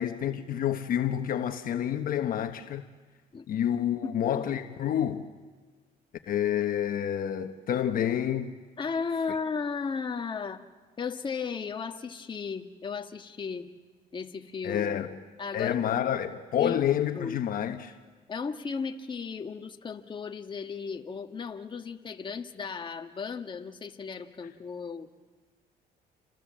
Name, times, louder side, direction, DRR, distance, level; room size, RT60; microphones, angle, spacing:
voice 1, 0.0-2.9 3.5-5.3 6.3-8.6 14.6-15.2 15.5-17.9, left 10 dB, 55° left, 1.2 m, -28 dB
voice 2, 8.8-10.6 11.0-13.7 14.1-15.0 15.4-15.8 16.6-16.8 17.1-17.4 18.3-25.1, left 5 dB, 30° left, 1.5 m, -35 dB
28.5 x 25.5 x 7.6 m
cardioid pair, 110°, 17 cm